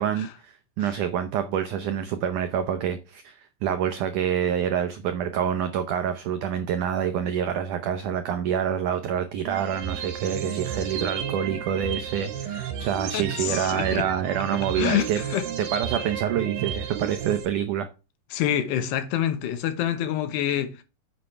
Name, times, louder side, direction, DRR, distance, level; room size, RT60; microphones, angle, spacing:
voice 1, 0.0-15.2 15.6-17.9, right 9 dB, 85° right, 1.7 m, -27 dB
sound 1, 9.5-17.5, right 9 dB, 65° right, 2.8 m, -33 dB
voice 2, 13.1-14.0 14.8-15.4 18.3-20.8, left 10 dB, 80° left, 3.2 m, -26 dB
9.6 x 7.5 x 3.3 m
omnidirectional pair, 4.8 m